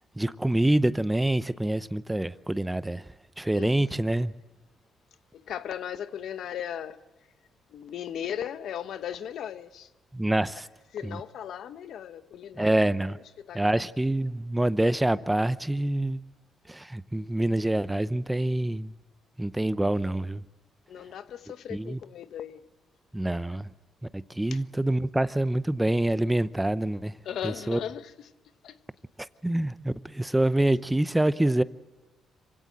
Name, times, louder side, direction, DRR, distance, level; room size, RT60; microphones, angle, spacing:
voice 1, 0.2-3.0 3.4-4.3 10.1-10.7 11.0-11.2 12.6-13.2 13.5-16.2 16.7-18.9 19.4-20.4 21.7-22.0 23.1-23.7 24.1-27.1 27.4-27.8 29.4-31.6, right 1 dB, 10° right, 0.7 m, -26 dB
voice 2, 3.5-4.1 5.3-7.0 7.7-9.9 10.9-13.0 13.4-13.9 20.9-22.6 24.5-24.6 27.2-28.3 28.6-28.8, left 9 dB, 70° left, 1.0 m, -37 dB
26.0 x 16.5 x 7.6 m
cardioid pair, 90°, 0 cm